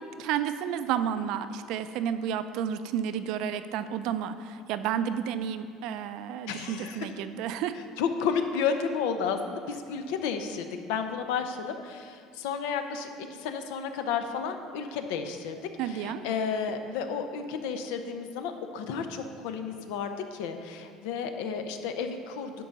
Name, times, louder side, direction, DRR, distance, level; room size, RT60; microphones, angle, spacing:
voice 1, 0.0-7.7 15.8-16.2, right 9 dB, 65° right, 11 dB, 0.5 m, -31 dB
voice 2, 6.5-7.1 7.8-22.5, left 6 dB, 90° left, 7 dB, 0.7 m, -32 dB
10.5 x 3.9 x 7.1 m, 2.2 s
cardioid pair, 140°, 0 cm